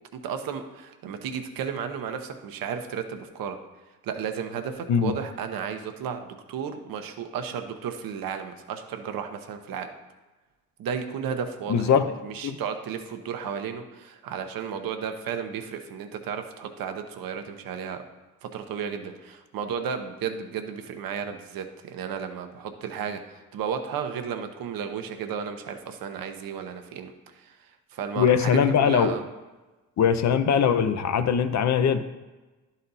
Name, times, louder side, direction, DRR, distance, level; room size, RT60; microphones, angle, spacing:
voice 1, 0.2-3.6 4.0-9.9 10.8-11.9 12.2-18.0 18.4-23.2 23.5-27.5 27.9-29.2, right 7 dB, 75° right, 6 dB, 0.9 m, -33 dB
voice 2, 11.7-12.1 12.4-12.6 28.2-29.2 30.0-32.0, left 7 dB, 50° left, 10 dB, 0.6 m, -21 dB
11.5 x 4.2 x 4.0 m, 1.2 s
cardioid pair, 110°, 35 cm